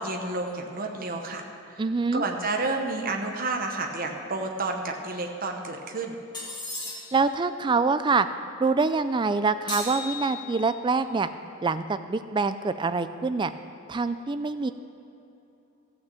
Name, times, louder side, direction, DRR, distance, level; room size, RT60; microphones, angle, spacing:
voice 1, 0.0-1.8 2.1-6.2, right 3 dB, 40° right, 2 dB, 1.0 m, -30 dB
voice 2, 1.8-2.2 7.1-8.3 8.6-11.3 11.6-13.5 13.9-14.7, right 4 dB, 20° right, 11 dB, 0.3 m, -25 dB
sound 1, 6.3-7.3 9.7-10.8, left 2 dB, 20° left, 2.3 m, -36 dB
15.0 x 5.9 x 7.6 m, 2.9 s
head